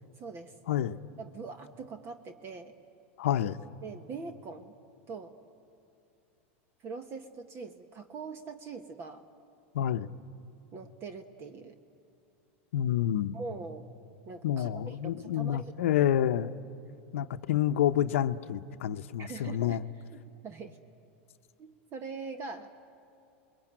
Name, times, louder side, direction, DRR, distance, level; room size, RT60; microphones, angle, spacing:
voice 1, 0.2-0.5 1.2-2.7 3.8-4.7 5.1-5.4 6.8-9.2 10.7-11.8 13.3-13.9 14.2-15.7 19.2-19.8 20.1-20.8 21.6-22.7, right 4 dB, 35° right, 8 dB, 1.4 m, -42 dB
voice 2, 0.7-1.0 3.2-3.6 9.7-10.1 12.7-13.4 14.4-16.5 17.1-19.8, left 10 dB, 80° left, 10 dB, 0.8 m, -28 dB
29.5 x 22.0 x 9.0 m, 2.6 s
supercardioid pair, 125°, 7 cm